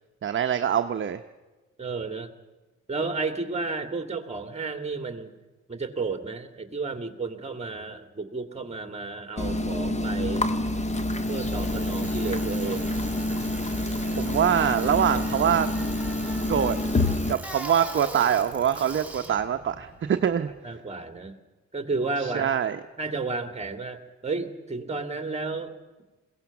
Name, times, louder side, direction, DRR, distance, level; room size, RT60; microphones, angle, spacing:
voice 1, 0.2-1.2 14.2-15.7 16.5-16.7 17.3-20.5 22.2-22.8, right 9 dB, 40° right, 7 dB, 0.9 m, -24 dB
voice 2, 1.8-2.3 2.9-5.4 5.7-10.5 11.3-12.9 20.6-21.3 21.7-22.6 23.0-25.7, right 3 dB, 20° right, 8 dB, 2.4 m, -32 dB
sound 1, 9.4-17.3, left 1 dB, 20° left, 1.5 m, -27 dB
Bicycle, 10.5-20.6, right 2 dB, 5° right, 3.1 m, -41 dB
21.5 x 17.0 x 7.2 m, 1.2 s
cardioid pair, 90°, 30 cm